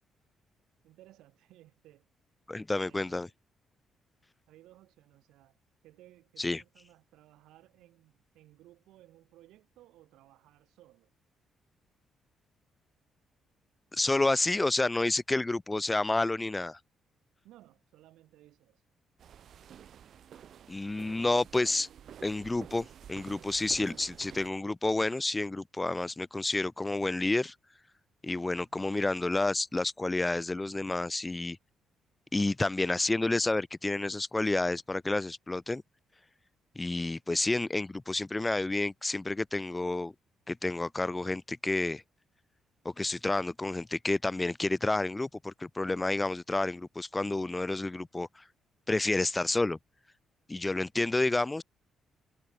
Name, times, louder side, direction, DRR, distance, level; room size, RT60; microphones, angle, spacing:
voice 1, 0.8-2.1 2.8-3.3 4.5-5.6 5.8-11.1 17.4-18.8 28.6-28.9, right 15 dB, 90° right, 5.0 m, -59 dB
voice 2, 2.5-3.3 6.4-6.6 13.9-16.8 20.7-21.9 22.2-27.5 28.2-31.6 32.3-35.8 36.8-40.1 40.5-42.0 42.8-48.4 48.9-49.8 50.5-51.6, left 2 dB, 15° left, 0.6 m, -30 dB
sound 1, 19.2-24.5, right 9 dB, 60° right, 5.5 m, -50 dB
cardioid pair, 90°, 0 cm